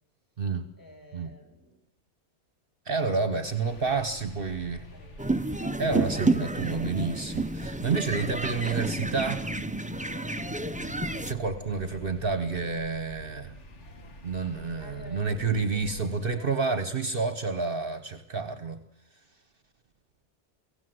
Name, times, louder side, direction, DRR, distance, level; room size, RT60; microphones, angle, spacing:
voice 1, 0.8-1.9 3.1-4.2 4.9-5.3 6.4-7.4 14.8-16.5, equal, 15° left, 3 dB, 4.2 m, -50 dB
voice 2, 2.9-4.9 5.8-9.5 11.2-13.5 14.2-18.8, right 4 dB, 50° right, 10 dB, 1.3 m, -29 dB
sound 1, 3.4-16.4, equal, 75° left, 2.0 m, -47 dB
sound 2, 5.2-11.3, right 2 dB, 10° right, 0.5 m, -30 dB
24.5 x 16.5 x 7.8 m, 0.90 s
omnidirectional pair, 1.2 m